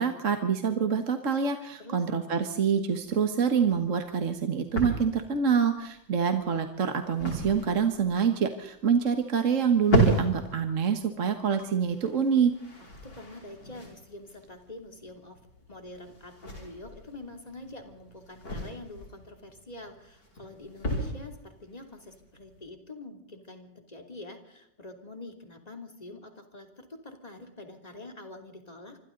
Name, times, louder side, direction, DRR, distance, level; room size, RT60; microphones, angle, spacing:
voice 1, 0.0-12.5, right 6 dB, 45° right, 6 dB, 1.6 m, -26 dB
sound 1, 2.9-22.7, right 1 dB, 60° left, 6.0 m, -34 dB
voice 2, 13.0-15.4 15.7-29.0, left 2 dB, 20° left, 4 dB, 3.0 m, -46 dB
26.5 x 25.5 x 3.9 m, 0.82 s
omnidirectional pair, 2.1 m